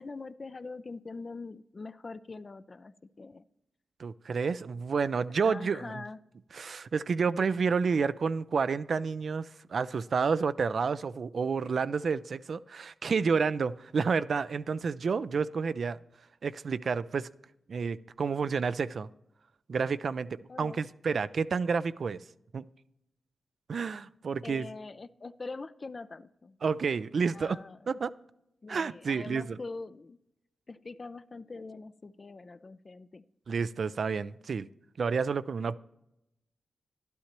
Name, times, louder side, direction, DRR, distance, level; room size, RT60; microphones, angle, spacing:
voice 1, 0.0-3.4 5.4-6.2 20.5-20.8 24.4-26.6 27.3-28.0 28.6-30.2 30.7-33.2, left 3 dB, 45° left, 0.4 m, -43 dB
voice 2, 4.0-6.0 6.5-16.0 16.4-17.3 17.7-19.1 19.7-20.3 20.6-22.2 22.5-22.6 23.7-24.7 26.6-27.6 27.9-28.1 28.7-29.6 33.5-34.7 35.0-35.8, right 5 dB, 65° right, 0.3 m, -30 dB
11.5 x 11.5 x 3.0 m
supercardioid pair, 40°, 0 cm